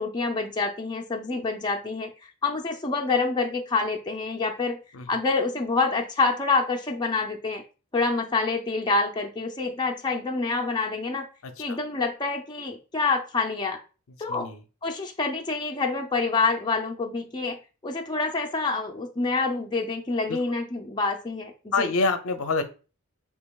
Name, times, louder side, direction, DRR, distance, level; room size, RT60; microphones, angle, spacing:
voice 1, 0.0-4.8 5.1-7.6 7.9-11.3 11.6-13.8 14.2-14.5 14.8-17.6 17.8-21.9, left 3 dB, 20° left, 2 dB, 0.5 m, -27 dB
voice 2, 11.4-11.8 14.3-14.6 20.3-20.4 21.7-22.6, left 3 dB, 65° left, 9 dB, 0.5 m, -26 dB
6.5 x 2.9 x 2.3 m, 0.34 s
head